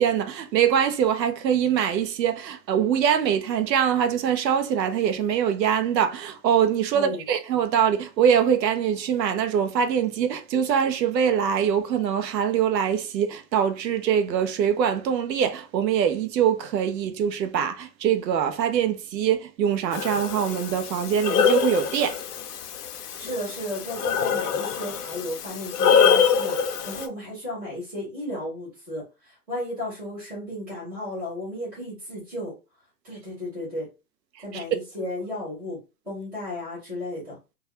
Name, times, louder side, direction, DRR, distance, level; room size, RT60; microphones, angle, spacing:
voice 1, 0.0-22.2 34.5-34.6, right 8 dB, 85° right, 0.6 m, -23 dB
voice 2, 6.9-7.3 23.2-32.5 33.0-33.9 34.4-35.8 36.0-37.4, left 1 dB, 5° right, 0.4 m, -34 dB
Breathing, 19.9-27.1, left 7 dB, 65° left, 0.6 m, -24 dB
2.3 x 2.2 x 2.8 m
hypercardioid pair, 145°, 49 cm